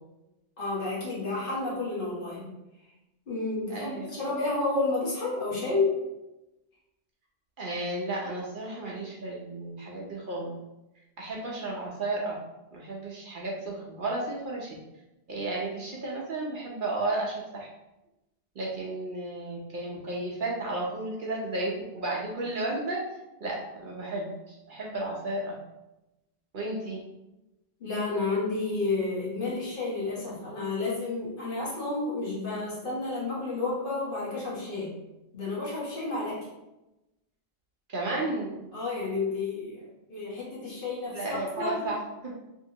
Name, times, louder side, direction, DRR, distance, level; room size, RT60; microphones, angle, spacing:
voice 1, 0.6-2.5 3.3-5.9 27.8-34.9 35.3-36.4 38.7-39.8 40.1-41.9, left 3 dB, 55° left, -5 dB, 1.1 m, -31 dB
voice 2, 3.7-4.2 7.6-10.6 11.2-12.3 12.7-14.7 15.3-17.7 18.6-23.0 23.4-25.5 26.5-27.0 37.9-38.7 41.1-42.3, right 2 dB, 55° right, -3 dB, 0.7 m, -33 dB
2.9 x 2.8 x 2.7 m, 0.96 s
omnidirectional pair, 1.1 m